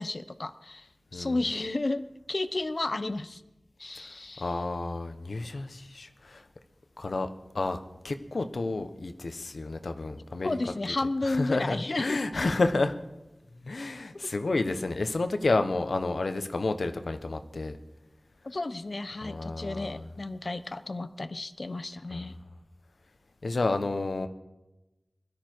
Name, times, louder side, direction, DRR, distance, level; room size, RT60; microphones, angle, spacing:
voice 1, 0.0-2.0 2.3-3.4 3.8-4.5 10.4-12.2 18.4-22.4, left 2 dB, 55° left, 12 dB, 0.9 m, -32 dB
voice 2, 1.1-1.4 3.9-4.1 4.4-6.4 7.0-7.3 7.5-7.8 8.0-10.6 10.8-13.0 13.6-17.8 19.2-20.1 22.1-22.3 23.4-24.3, left 3 dB, 80° left, 8 dB, 1.2 m, -30 dB
21.0 x 13.0 x 4.7 m, 1.0 s
wide cardioid pair, 65°, 0 cm